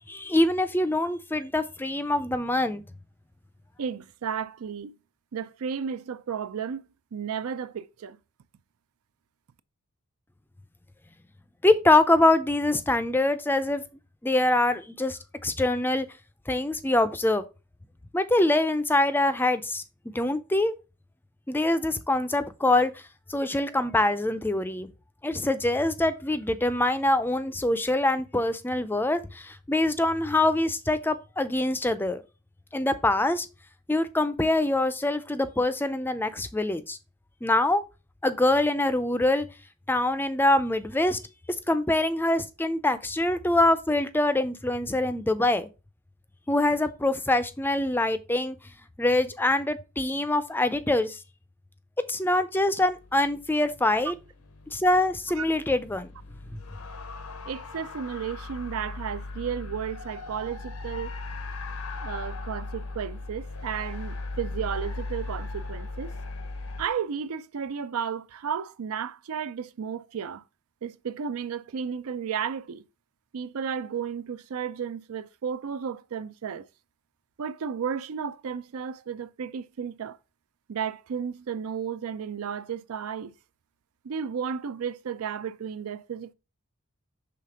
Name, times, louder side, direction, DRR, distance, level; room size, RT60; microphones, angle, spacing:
voice 1, 0.1-2.8 11.6-13.8 14.2-16.1 16.5-17.4 18.1-19.8 20.1-20.7 21.5-23.0 23.3-24.9 25.2-32.2 32.7-33.5 33.9-37.0 37.4-37.8 38.2-39.5 39.9-41.2 41.7-45.7 46.5-48.6 49.0-51.2 52.1-54.1 54.7-56.1 56.5-56.6, left 2 dB, 10° left, 0.4 m, -24 dB
voice 2, 3.8-4.9 5.3-6.8 7.1-8.2 55.4-55.5 57.5-61.1 62.0-66.1 66.8-70.4 70.8-72.8 73.3-76.7 77.4-80.2 80.7-83.3 84.0-86.3, right 7 dB, 80° right, 0.4 m, -33 dB
sound 1, 52.9-66.9, left 2 dB, 85° left, 0.9 m, -38 dB
5.8 x 3.6 x 4.8 m
head